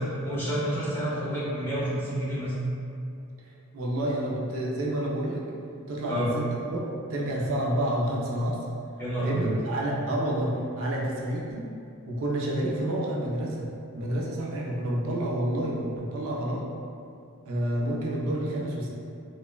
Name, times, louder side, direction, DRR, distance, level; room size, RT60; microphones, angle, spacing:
voice 1, 0.0-2.5 6.1-6.3 9.0-9.5, right 1 dB, 10° left, -9 dB, 0.6 m, -29 dB
voice 2, 3.7-5.4 5.9-8.6 9.2-11.7 12.0-13.7 13.9-16.6 17.5-18.9, right 1 dB, 65° right, -3 dB, 0.4 m, -29 dB
3.0 x 2.0 x 2.3 m, 2.5 s
head